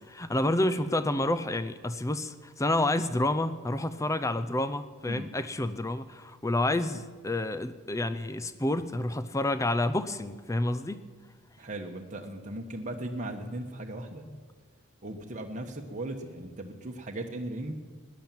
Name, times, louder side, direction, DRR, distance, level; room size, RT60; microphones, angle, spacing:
voice 1, 0.1-11.0 14.3-14.4, left 1 dB, 15° left, 12 dB, 0.5 m, -29 dB
voice 2, 11.6-14.2 15.0-17.8, right 1 dB, 35° right, 1 dB, 1.1 m, -37 dB
16.5 x 10.5 x 7.3 m, 1.5 s
head